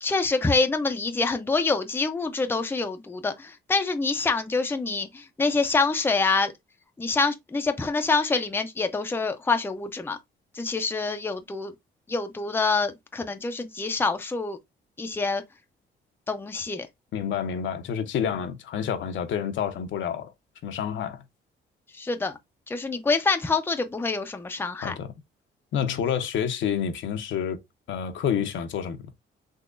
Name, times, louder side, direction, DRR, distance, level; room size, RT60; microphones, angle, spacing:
voice 1, 0.0-6.5 7.0-10.2 10.5-11.7 12.1-14.6 15.0-15.4 16.3-16.9 22.0-22.4 22.7-24.9, left 4 dB, 10° left, 0.5 m, -26 dB
voice 2, 17.1-20.3 20.6-21.2 24.8-25.1 25.7-27.6 27.9-29.0, left 8 dB, 70° left, 0.8 m, -28 dB
3.8 x 2.9 x 2.5 m
cardioid pair, 90°, 20 cm